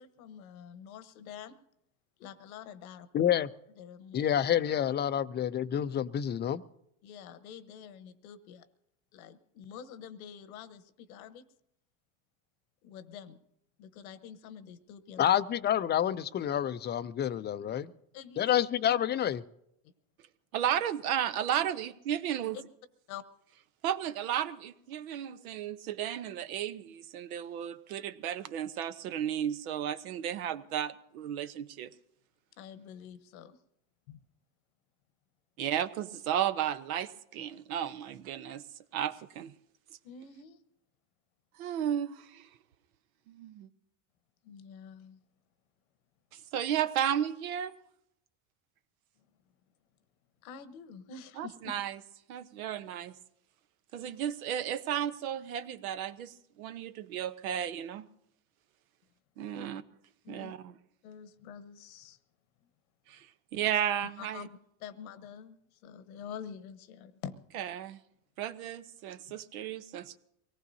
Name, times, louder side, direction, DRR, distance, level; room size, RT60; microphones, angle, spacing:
voice 1, 0.0-1.6 2.2-3.1 3.8-4.2 7.0-8.7 9.1-11.4 12.8-13.4 13.8-15.3 18.1-18.5 22.5-22.6 23.1-23.2 32.6-33.6 34.1-34.2 40.0-40.6 44.4-45.2 50.4-51.7 59.5-59.7 60.2-60.5 61.0-62.2 64.2-67.3 69.3-69.4, left 8 dB, 80° left, 1.2 m, -47 dB
voice 2, 3.1-3.5 4.1-6.6 15.2-17.9 18.4-19.4, left 10 dB, 25° left, 0.5 m, -28 dB
voice 3, 20.5-22.6 23.8-31.9 35.6-38.6 38.9-39.5 41.6-42.5 43.3-43.7 46.3-47.7 51.4-52.0 52.3-53.2 53.9-58.1 59.4-59.8 60.3-60.7 63.1-63.3 63.5-64.5 67.5-68.0 68.4-70.2, right 10 dB, 80° right, 1.0 m, -34 dB
24.0 x 18.5 x 2.7 m
supercardioid pair, 105°, 42 cm